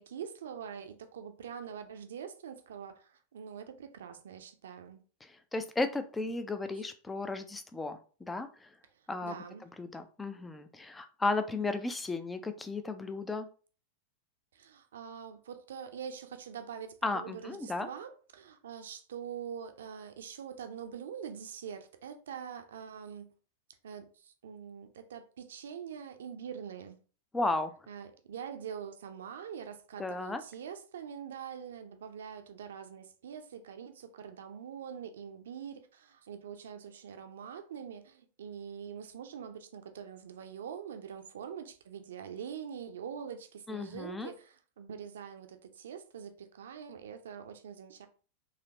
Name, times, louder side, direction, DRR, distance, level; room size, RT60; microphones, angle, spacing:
voice 1, 0.0-5.0 9.2-9.7 14.5-23.3 23.8-27.0 27.9-48.1, right 8 dB, 60° right, 0.6 m, -44 dB
voice 2, 5.2-8.7 9.1-13.5 17.0-17.9 27.3-27.7 30.0-30.4 43.7-44.3, left 3 dB, 10° left, 0.5 m, -34 dB
4.1 x 2.9 x 2.8 m
figure-of-eight pair, 90°, 0 cm